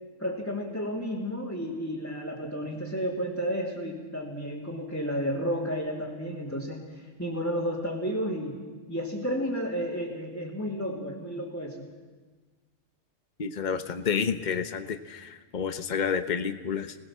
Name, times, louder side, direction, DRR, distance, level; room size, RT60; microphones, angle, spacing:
voice 1, 0.2-8.6 8.9-11.8, equal, 10° left, -6 dB, 2.9 m, -32 dB
voice 2, 13.4-17.0, left 6 dB, 40° left, 9 dB, 1.1 m, -30 dB
27.0 x 19.5 x 7.4 m, 1.4 s
omnidirectional pair, 1.2 m